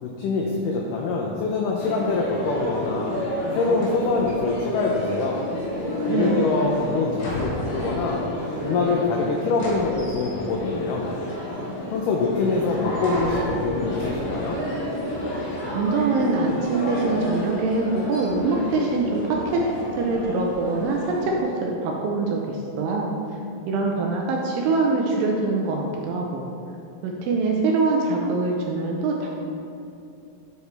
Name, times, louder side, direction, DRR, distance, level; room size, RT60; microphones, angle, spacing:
voice 1, 0.0-3.2 3.5-5.5 6.0-8.2 8.6-11.1 11.9-14.6, left 3 dB, 90° left, -1 dB, 1.8 m, -24 dB
sound 1, 1.8-21.4, left 1 dB, 65° left, 1.6 m, -31 dB
voice 2, 6.0-6.3 6.6-6.7 15.7-19.7 19.9-23.2 23.7-26.4 27.0-29.3, right 3 dB, 80° right, 0 dB, 2.1 m, -24 dB
7.9 x 4.8 x 3.3 m, 2.7 s
omnidirectional pair, 4.4 m